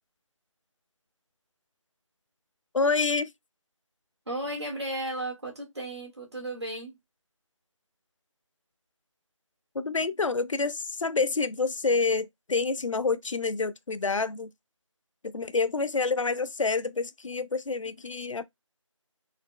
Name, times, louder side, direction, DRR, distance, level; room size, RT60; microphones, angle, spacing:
voice 1, 2.7-3.3 9.7-14.5 15.3-18.4, left 4 dB, 75° left, 0.5 m, -28 dB
voice 2, 4.3-6.9, right 1 dB, 55° right, 1.7 m, -34 dB
4.1 x 2.8 x 2.2 m
figure-of-eight pair, 175°, 17 cm